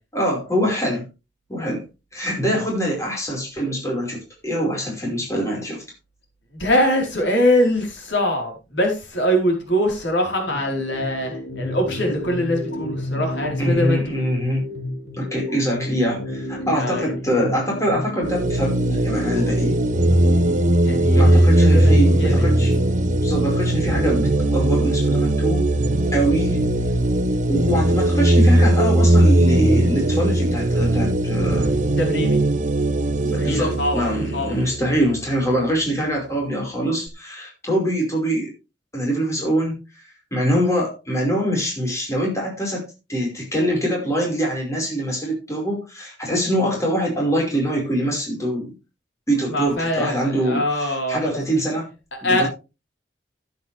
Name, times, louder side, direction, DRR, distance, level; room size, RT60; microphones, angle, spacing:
voice 1, 0.1-1.0 1.5-1.8 2.1-5.8 13.6-14.7 15.1-19.8 21.1-22.8 23.2-25.7 26.1-26.6 27.5-31.8 33.2-38.5 38.9-40.0 40.3-48.7 49.3-51.9 52.2-52.5, equal, 15° left, -2 dB, 5.2 m, -24 dB
voice 2, 6.5-14.2 16.7-17.1 20.8-22.4 32.0-32.4 33.0-34.6 49.5-51.2 52.2-52.5, equal, 75° left, 1 dB, 4.5 m, -23 dB
sound 1, 10.5-21.5, left 1 dB, 60° left, 2.6 m, -31 dB
sound 2, 18.2-35.6, right 1 dB, 40° right, 1.0 m, -19 dB
13.0 x 9.8 x 3.5 m, 0.29 s
head